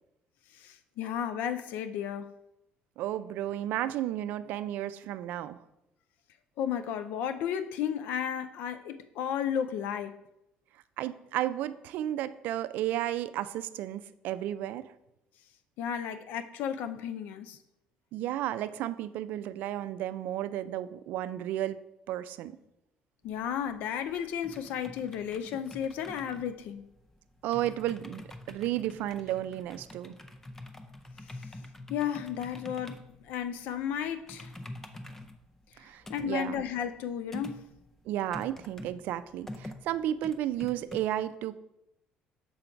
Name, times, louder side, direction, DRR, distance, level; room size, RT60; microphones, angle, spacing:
voice 1, 0.5-2.3 6.6-10.2 15.8-17.6 23.2-26.8 31.2-31.5 31.9-34.5 35.7-35.8 36.1-37.6, left 9 dB, 75° left, 0.4 m, -33 dB
voice 2, 3.0-5.6 11.0-14.9 18.1-21.8 22.1-22.5 27.4-30.1 35.8-36.6 38.1-41.6, right 12 dB, 70° right, 0.3 m, -33 dB
sound 1, 23.2-41.0, left 1 dB, 15° left, 0.6 m, -46 dB
7.0 x 3.8 x 4.5 m
cardioid pair, 115°, 3 cm